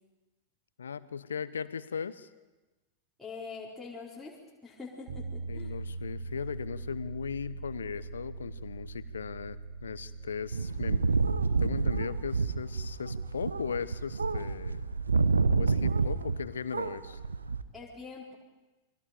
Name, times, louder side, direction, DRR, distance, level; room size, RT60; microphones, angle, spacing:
voice 1, 0.8-2.3 5.5-11.0 11.6-14.9 15.6-17.2, left 6 dB, 70° left, 16 dB, 0.9 m, -38 dB
voice 2, 3.2-5.7 17.7-18.4, left 4 dB, 5° left, -6 dB, 4.6 m, -44 dB
sound 1, 5.1-16.9, right 3 dB, 55° right, 2.9 m, -44 dB
sound 2, 10.5-16.5 16.7-17.6, right 4 dB, 75° right, 1.0 m, -29 dB
29.5 x 23.0 x 5.2 m, 1.1 s
figure-of-eight pair, 90°, 0 cm